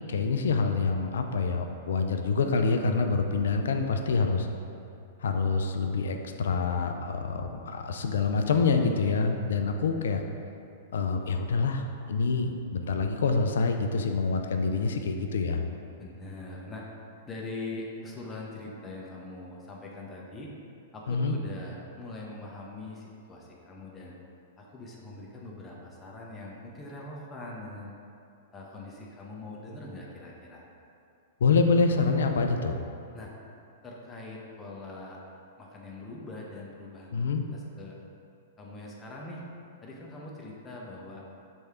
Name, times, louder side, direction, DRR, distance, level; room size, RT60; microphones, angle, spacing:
voice 1, 0.1-4.5 5.2-10.2 10.9-15.6 21.1-21.4 31.4-32.8 37.1-37.4, left 4 dB, 75° left, 5 dB, 0.4 m, -26 dB
voice 2, 16.0-16.8 17.3-20.5 20.9-24.2 24.6-27.9 28.5-30.7 33.1-33.3 33.8-35.2 35.6-38.0 38.6-39.4 39.8-41.2, left 2 dB, 20° left, -3 dB, 0.8 m, -42 dB
3.5 x 3.3 x 4.3 m, 2.6 s
hypercardioid pair, 110°, 0 cm